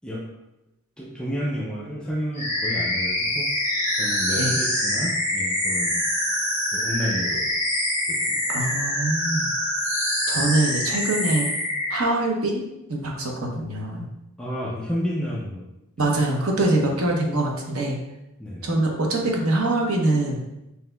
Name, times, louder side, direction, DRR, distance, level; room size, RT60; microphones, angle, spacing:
voice 1, 1.0-3.5 3.9-6.0 6.7-7.5 8.1-8.7 10.3-10.4 14.4-15.7 17.0-17.2 18.4-18.7, equal, 5° left, -6 dB, 0.4 m, -31 dB
sound 1, 2.3-12.0, left 1 dB, 30° right, 1.5 m, -25 dB
voice 2, 8.5-9.5 10.3-11.5 11.9-12.6 12.9-14.1 16.0-18.0 18.6-20.4, right 2 dB, 70° right, 0 dB, 0.8 m, -24 dB
5.7 x 2.8 x 2.3 m, 0.90 s
head